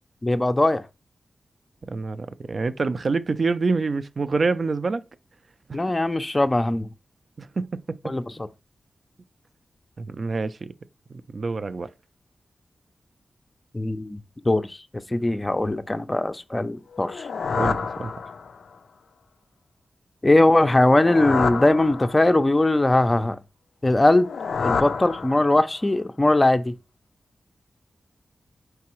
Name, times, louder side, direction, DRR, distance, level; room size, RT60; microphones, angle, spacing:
voice 1, 0.2-0.8 5.7-6.9 8.0-8.2 13.7-14.2 14.4-14.8 15.1-17.3 20.2-23.4 23.8-24.3 24.6-26.7, left 2 dB, 20° left, 0.4 m, -20 dB
voice 2, 1.9-5.0 5.7-5.9 7.4-8.1 10.0-10.7 11.1-11.9 17.6-18.1, right 4 dB, 55° right, 0.3 m, -27 dB
sound 1, 16.9-18.7 20.7-22.5 24.0-25.8, left 5 dB, 85° left, 0.3 m, -29 dB
4.6 x 3.3 x 3.0 m
wide cardioid pair, 90°, 0 cm